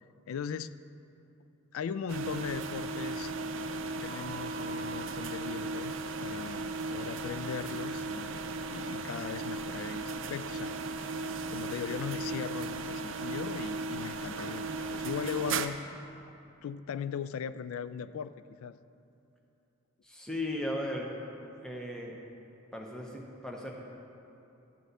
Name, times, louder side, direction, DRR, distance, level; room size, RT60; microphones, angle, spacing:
voice 1, 0.3-0.7 1.7-3.3 4.0-5.9 6.2-8.4 8.7-10.7 11.4-15.8 16.6-18.8, left 7 dB, 80° left, 15 dB, 0.3 m, -38 dB
sound 1, 2.1-15.7, right 3 dB, 65° right, 0.5 m, -36 dB
Keyboard (musical), 4.1-6.6, right 3 dB, 30° left, 1.4 m, -49 dB
voice 2, 20.0-21.1 21.6-22.2 22.7-23.7, left 1 dB, 5° left, -1 dB, 0.7 m, -36 dB
12.0 x 4.2 x 7.9 m, 2.8 s
head